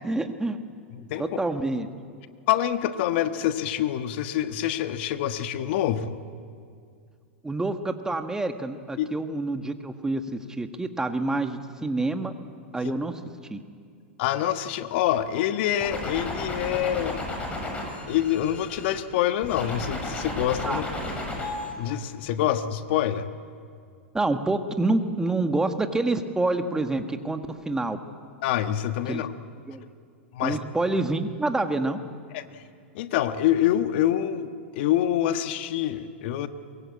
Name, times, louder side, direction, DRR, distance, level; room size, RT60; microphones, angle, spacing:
voice 1, 0.0-0.6 1.2-1.9 7.4-10.2 10.6-12.3 12.7-13.2 13.5-13.6 20.6-20.8 24.1-28.0 29.1-29.2 29.7-29.8 30.4-32.0, right 2 dB, 10° right, 7 dB, 1.7 m, -27 dB
voice 2, 2.5-6.2 9.0-9.1 12.8-12.9 14.2-17.2 18.1-20.9 21.8-23.3 28.4-29.3 30.3-30.6 32.3-32.6 32.9-36.5, left 11 dB, 60° left, 9 dB, 1.4 m, -26 dB
sound 1, 15.8-19.0 19.4-21.7, left 2 dB, 20° left, 7.2 m, -33 dB
23.0 x 22.5 x 8.6 m, 2.3 s
hypercardioid pair, 105°, 7 cm